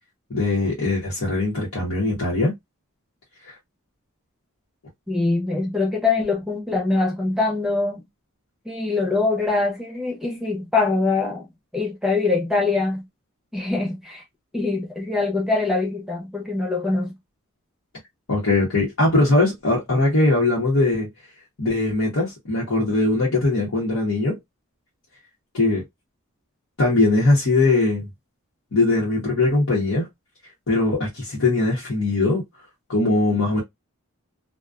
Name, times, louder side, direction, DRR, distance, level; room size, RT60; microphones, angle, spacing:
voice 1, 0.3-2.5 18.3-21.1 21.6-24.4 25.5-25.8 26.8-28.1 28.7-30.1 30.7-32.4 32.9-33.6, left 2 dB, 70° left, 0.9 m, -20 dB
voice 2, 5.1-8.0 8.7-11.5 11.7-13.1 13.5-14.2 14.5-17.2, left 3 dB, ahead, 0.6 m, -23 dB
2.4 x 2.2 x 2.4 m
head